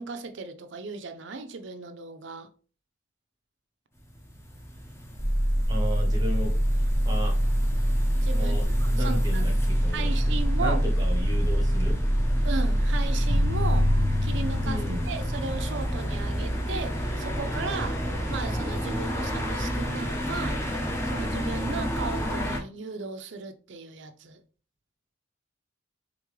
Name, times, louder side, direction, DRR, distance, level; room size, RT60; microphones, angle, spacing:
voice 1, 0.0-2.5 8.2-9.5 9.9-10.8 12.4-13.9 14.2-18.0 18.3-20.8 21.0-24.4, right 4 dB, 60° right, 0.5 m, -36 dB
sound 1, 4.0-22.6, equal, 15° left, 0.7 m, -32 dB
sound 2, 5.2-14.0, equal, 35° left, 1.5 m, -24 dB
voice 2, 5.7-6.5 7.0-7.3 8.3-12.0 14.6-15.1, equal, 20° right, 0.9 m, -34 dB
sound 3, 13.3-17.4, left 1 dB, 65° left, 1.4 m, -28 dB
3.6 x 3.5 x 3.1 m
head